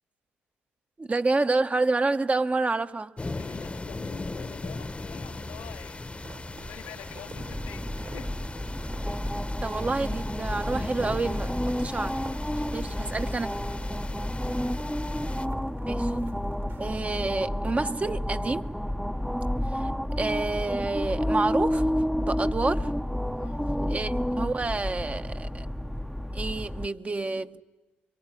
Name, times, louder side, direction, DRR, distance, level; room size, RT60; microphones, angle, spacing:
voice 1, 1.0-3.1 9.6-12.2 12.7-13.6 15.8-16.3 16.8-18.7 19.7-19.9 20.2-21.9 22.1-22.9 23.8-25.7 26.3-27.6, right 3 dB, 30° right, 1.0 m, -28 dB
sound 1, 3.2-15.5, left 2 dB, 25° left, 1.1 m, -38 dB
voice 2, 3.4-8.5 13.9-14.6 23.4-23.6, left 11 dB, 80° left, 1.3 m, -47 dB
sound 2, 6.2-17.2, right 5 dB, 60° right, 2.8 m, -51 dB
sound 3, 7.4-26.9, equal, ahead, 0.8 m, -30 dB
24.5 x 23.0 x 9.9 m
hypercardioid pair, 50°, 5 cm